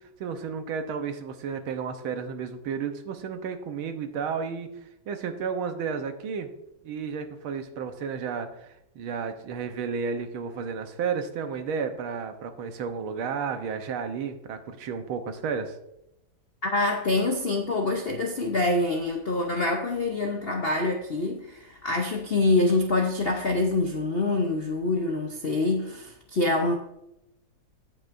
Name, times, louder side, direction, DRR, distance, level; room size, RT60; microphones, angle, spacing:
voice 1, 0.0-4.7 5.1-6.5 6.8-15.8, right 6 dB, 85° right, 7 dB, 1.8 m, -32 dB
voice 2, 16.6-26.7, left 2 dB, 65° left, 2 dB, 0.5 m, -25 dB
15.5 x 6.0 x 2.6 m, 0.83 s
omnidirectional pair, 2.2 m